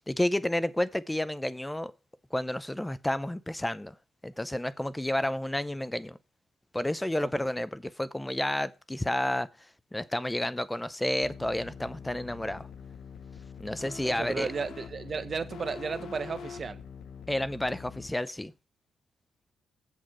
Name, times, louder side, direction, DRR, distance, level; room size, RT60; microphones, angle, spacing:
voice 1, 0.1-1.9 2.3-3.9 4.2-6.2 6.7-9.5 9.9-12.7 13.6-14.5 17.3-18.5, left 1 dB, 10° left, 0.6 m, -30 dB
sound 1, 11.2-18.1, left 6 dB, 75° left, 0.9 m, -44 dB
voice 2, 14.0-16.8, right 5 dB, 40° right, 1.2 m, -34 dB
7.9 x 7.4 x 4.5 m
cardioid pair, 105°, 0 cm